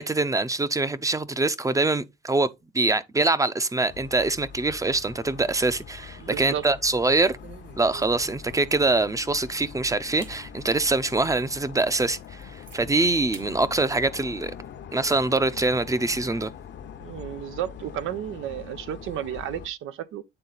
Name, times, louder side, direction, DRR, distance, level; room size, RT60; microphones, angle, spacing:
voice 1, 0.0-2.5 2.7-7.3 7.8-14.5 14.9-16.5, right 2 dB, 15° right, 0.6 m, -24 dB
sound 1, 3.9-19.7, left 7 dB, 65° left, 0.9 m, -43 dB
sound 2, 5.3-6.0 6.4-6.6 7.1-9.2 9.7-9.8 10.2-10.4 10.9-11.0 11.5-11.6 12.0-12.8 13.3-13.5 13.9-14.8, right 6 dB, 65° right, 2.0 m, -49 dB
voice 2, 6.2-6.7 17.0-20.2, right 11 dB, 85° right, 0.8 m, -33 dB
8.9 x 3.8 x 4.0 m
cardioid pair, 90°, 20 cm